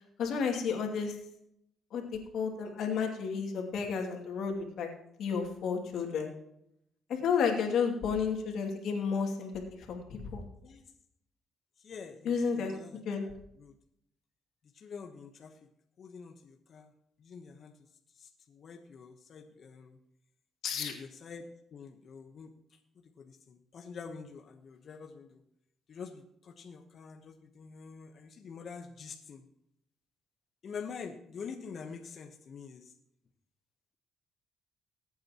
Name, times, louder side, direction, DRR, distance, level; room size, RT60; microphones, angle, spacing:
voice 1, 0.2-1.2 1.9-4.9 5.2-6.3 7.1-9.5 9.8-10.4 12.2-12.7 13.0-13.3 20.6-20.9, left 6 dB, 75° left, 1 dB, 2.5 m, -32 dB
voice 2, 11.8-13.0 13.6-13.7 14.7-15.6 16.0-16.9 17.2-17.7 18.2-20.0 20.8-22.5 23.0-25.4 25.9-29.4 30.6-32.9, left 5 dB, 55° left, 4 dB, 1.1 m, -46 dB
21.0 x 8.6 x 3.0 m, 0.76 s
cardioid pair, 90°, 0 cm